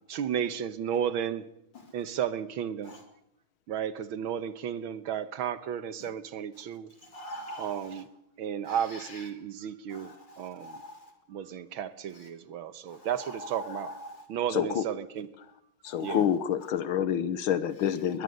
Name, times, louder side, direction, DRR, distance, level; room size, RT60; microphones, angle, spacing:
voice 1, 0.1-1.5 1.9-3.0 3.7-6.9 7.6-8.1 8.4-10.8 11.3-13.9 14.3-15.3 16.0-16.2, right 9 dB, 80° right, 1.9 m, -33 dB
voice 2, 7.0-8.0 8.6-9.3 9.9-11.1 12.1-12.3 12.9-14.3 15.9-16.2, left 1 dB, 60° left, 4.6 m, -44 dB
voice 3, 14.5-14.9 15.8-18.2, left 9 dB, 80° left, 1.8 m, -27 dB
22.0 x 20.5 x 6.6 m
omnidirectional pair, 2.2 m